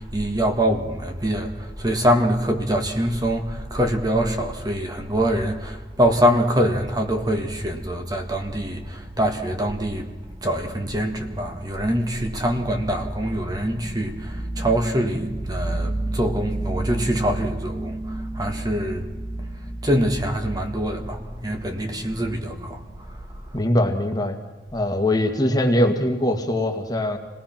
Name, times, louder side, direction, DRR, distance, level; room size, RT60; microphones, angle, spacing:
voice 1, 0.0-10.1 10.4-22.8, equal, 25° right, 1.9 m, -24 dB
voice 2, 23.5-24.4 24.7-27.2, left 1 dB, 20° left, 2.0 m, -21 dB
27.5 x 19.0 x 6.0 m
head